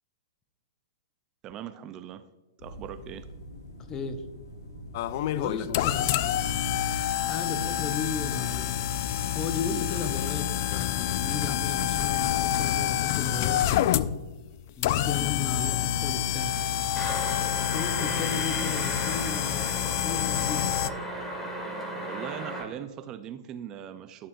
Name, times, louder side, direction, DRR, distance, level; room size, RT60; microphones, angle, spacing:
voice 1, 1.4-2.3 2.6-3.3 22.0-24.3, right 10 dB, 30° right, 11 dB, 0.4 m, -40 dB
sound 1, 2.6-9.2, right 2 dB, 70° left, 1.6 m, -43 dB
voice 2, 3.9-4.2 5.3-6.4 7.3-8.8 9.3-14.0 14.8-16.6 17.7-20.7, left 5 dB, 25° left, 8 dB, 0.9 m, -35 dB
sound 2, 4.9-20.9, left 12 dB, 50° left, 0.3 m, -28 dB
sound 3, 17.0-22.6, right 1 dB, 10° left, 1.9 m, -35 dB
11.0 x 6.7 x 2.5 m, 1.2 s
figure-of-eight pair, 115°, 2 cm